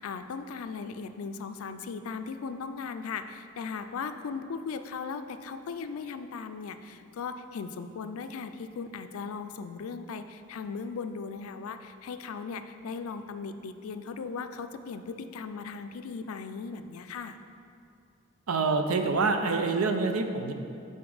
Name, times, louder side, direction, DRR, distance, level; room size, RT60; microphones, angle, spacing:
voice 1, 0.0-17.4, left 5 dB, 80° left, 9 dB, 0.4 m, -38 dB
voice 2, 18.5-20.5, right 4 dB, 90° right, 6 dB, 0.5 m, -26 dB
7.0 x 4.2 x 4.8 m, 2.5 s
head